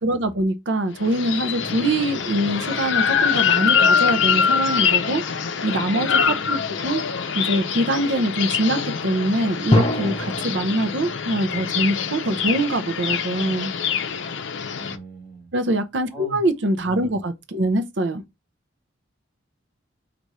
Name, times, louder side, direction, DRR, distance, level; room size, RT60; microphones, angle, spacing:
voice 1, 0.0-5.2 5.6-7.0 7.3-13.7 15.5-18.2, right 1 dB, 70° right, 0.7 m, -24 dB
sound 1, 1.0-15.0, left 7 dB, 75° left, 0.5 m, -24 dB
sound 2, 1.6-4.6 5.1-5.4 9.7-14.0, left 1 dB, 30° left, 0.8 m, -30 dB
voice 2, 6.3-6.9 14.7-15.5 16.1-16.4 16.9-17.2, right 2 dB, ahead, 1.7 m, -41 dB
4.1 x 2.6 x 4.6 m
head